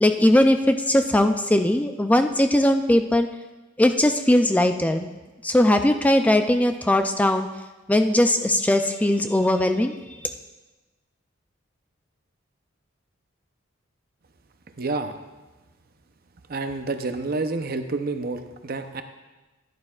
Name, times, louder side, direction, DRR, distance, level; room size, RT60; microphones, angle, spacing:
voice 1, 0.0-3.3 3.8-5.1 5.4-7.5 7.9-10.3, left 1 dB, 10° left, 7 dB, 0.3 m, -20 dB
voice 2, 14.8-15.1 16.5-19.0, right 3 dB, 50° right, 7 dB, 0.7 m, -29 dB
14.0 x 11.0 x 2.4 m, 1.2 s
head